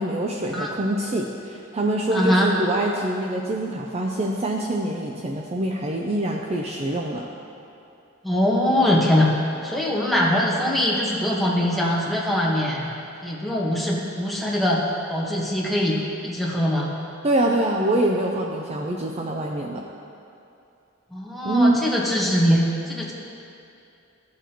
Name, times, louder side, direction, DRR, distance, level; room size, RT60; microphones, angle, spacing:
voice 1, 0.0-7.3 17.2-19.8 21.4-21.8, right 1 dB, 30° right, 0 dB, 0.5 m, -24 dB
voice 2, 2.1-2.5 8.2-9.3 9.6-12.9 13.2-14.8 15.1-16.9 21.1-23.1, left 1 dB, ahead, -5 dB, 1.3 m, -22 dB
15.0 x 7.0 x 3.0 m, 2.6 s
head